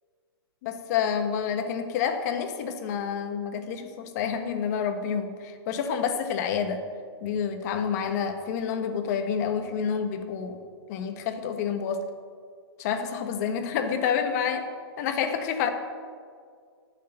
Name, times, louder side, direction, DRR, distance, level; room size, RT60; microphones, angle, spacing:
voice 1, 0.6-6.8 7.2-10.6 10.9-12.1 12.8-14.7 15.0-15.7, left 7 dB, 40° left, 6 dB, 1.3 m, -28 dB
13.0 x 6.7 x 7.9 m, 2.1 s
hypercardioid pair, 150°, 14 cm